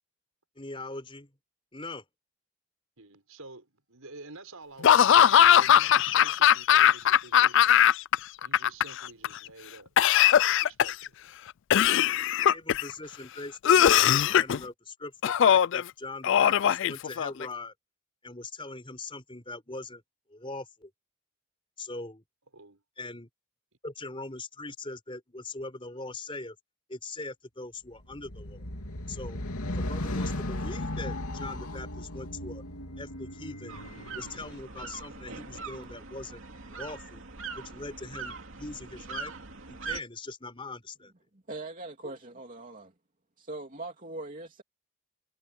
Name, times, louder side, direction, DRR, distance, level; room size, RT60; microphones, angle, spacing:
voice 1, 0.6-1.3 1.7-2.0 12.4-17.7 18.2-20.0 20.3-20.9 21.8-22.2 23.0-23.3 23.8-26.6 26.9-28.6 29.1-29.4 29.8-32.6 33.0-33.8 34.1-36.4 36.7-37.2 37.5-39.3 39.7-41.1, left 2 dB, 25° left, 4.6 m, -41 dB
voice 2, 3.0-7.8 8.4-9.9 10.6-11.1 22.5-22.8 42.0-42.1, right 3 dB, 75° right, 5.9 m, -48 dB
Laughter / Cough, 4.8-8.2 8.4-9.3 10.0-11.1 11.7-12.9 13.6-14.6 15.2-15.8 16.2-17.5, left 10 dB, 55° left, 0.3 m, -20 dB
sound 1, 28.0-34.5, left 1 dB, 80° left, 2.9 m, -36 dB
sound 2, 33.7-40.0, right 4 dB, 60° right, 2.9 m, -41 dB
voice 3, 41.3-42.9 43.4-44.6, right 2 dB, 35° right, 3.0 m, -41 dB
head